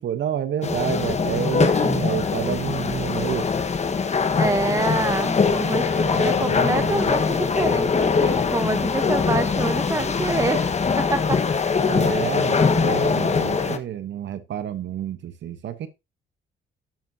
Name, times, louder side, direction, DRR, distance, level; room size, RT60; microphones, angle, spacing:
voice 1, 0.0-3.5 6.0-7.1 11.8-15.9, right 10 dB, 65° right, 1.0 m, -29 dB
sound 1, 0.6-13.8, left 5 dB, 35° left, 1.3 m, -22 dB
voice 2, 4.4-10.7 11.0-11.4, right 2 dB, 15° right, 1.3 m, -26 dB
11.5 x 7.2 x 2.7 m
cardioid pair, 90°, 20 cm